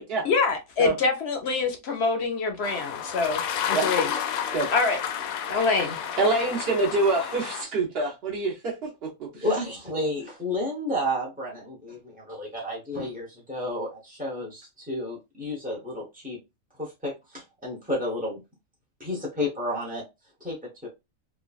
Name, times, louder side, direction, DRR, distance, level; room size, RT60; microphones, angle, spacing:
voice 1, 0.2-4.1 4.7-5.0 5.5-6.1, left 4 dB, 60° left, 0.7 m, -25 dB
sound 1, 2.6-7.6, left 8 dB, 85° left, 1.0 m, -31 dB
voice 2, 6.2-8.8 9.0-9.4, right 3 dB, 55° right, 0.8 m, -26 dB
voice 3, 9.4-16.4 16.8-18.4 19.0-20.0 20.4-20.6 20.8-20.9, left 1 dB, 15° right, 0.3 m, -31 dB
3.1 x 2.2 x 2.3 m
omnidirectional pair, 1.4 m